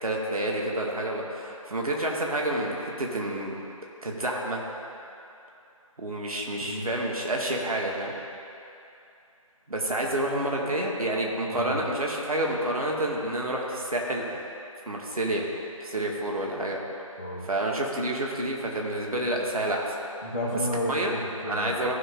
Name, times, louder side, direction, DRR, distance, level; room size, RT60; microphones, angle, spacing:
voice 1, 0.0-3.5 4.0-4.6 6.0-8.1 9.7-14.2 14.9-15.4 15.8-16.8 17.4-19.9 20.9-21.1 21.5-22.0, right 1 dB, 80° right, -1 dB, 2.1 m, -29 dB
voice 2, 20.2-21.8, left 1 dB, 10° right, -4 dB, 0.5 m, -32 dB
15.0 x 5.8 x 3.8 m, 2.7 s
figure-of-eight pair, 170°, 18 cm